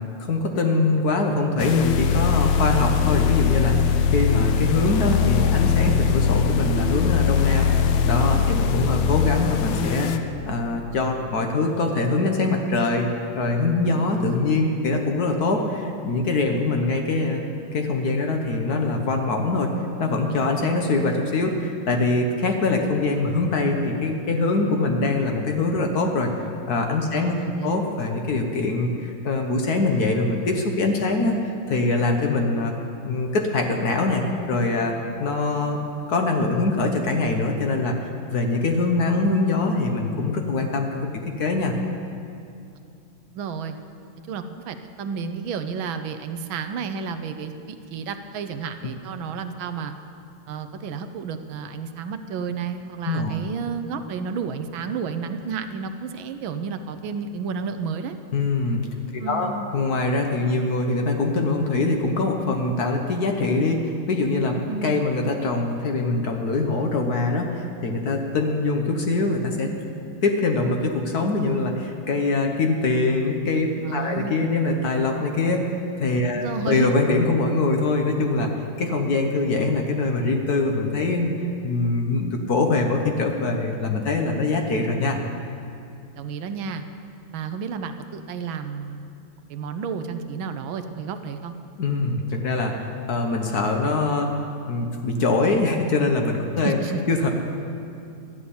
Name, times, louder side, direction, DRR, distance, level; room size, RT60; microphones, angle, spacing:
voice 1, 0.2-7.7 8.0-13.1 13.3-17.4 17.7-19.7 20.0-26.3 26.7-27.4 27.6-31.3 31.7-32.7 33.0-34.9 35.2-35.8 36.1-37.9 38.3-41.1 41.4-41.7 53.1-53.4 58.3-58.9 59.3-64.5 64.8-69.7 70.2-78.5 78.8-81.4 81.6-85.2 91.8-92.7 93.1-94.3 94.7-96.8 97.1-97.3, left 3 dB, 55° left, 3 dB, 1.3 m, -23 dB
sound 1, 1.6-10.2, left 7 dB, 80° left, 1.5 m, -21 dB
voice 2, 27.1-27.8 43.3-43.8 44.3-49.9 50.5-58.1 59.2-59.7 64.7-64.9 73.8-74.4 76.3-76.9 86.2-86.8 87.3-89.1 89.5-91.5 96.6-97.0, right 6 dB, 75° right, 8 dB, 1.4 m, -31 dB
12.5 x 9.7 x 7.0 m, 2.6 s
omnidirectional pair, 2.3 m